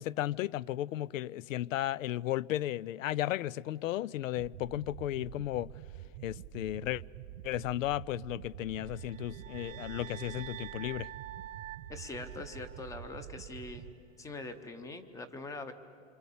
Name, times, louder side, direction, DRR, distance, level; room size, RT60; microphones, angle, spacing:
voice 1, 0.0-5.7 6.2-7.0 7.4-11.1, left 14 dB, 85° left, 0.6 m, -34 dB
sound 1, 4.4-13.9, right 12 dB, 35° right, 0.6 m, -47 dB
sound 2, 8.8-13.1, right 13 dB, 80° right, 0.8 m, -47 dB
voice 2, 11.9-13.9 14.2-15.7, left 3 dB, 10° left, 0.8 m, -43 dB
26.0 x 26.0 x 8.5 m
supercardioid pair, 165°, 38 cm